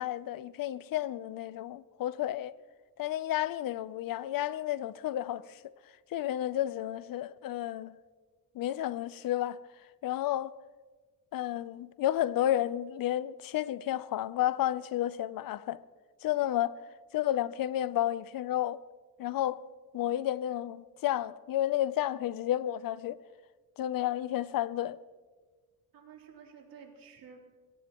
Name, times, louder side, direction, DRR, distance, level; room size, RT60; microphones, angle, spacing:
voice 1, 0.0-2.5 3.0-5.6 6.1-8.0 8.5-9.6 10.0-10.5 11.3-15.8 16.2-16.8 17.1-18.8 19.2-19.6 19.9-23.2 23.8-25.0, left 12 dB, 65° left, 0.6 m, -31 dB
voice 2, 25.9-27.4, right 6 dB, 65° right, 3.3 m, -52 dB
22.0 x 17.0 x 3.0 m
cardioid pair, 115°, 37 cm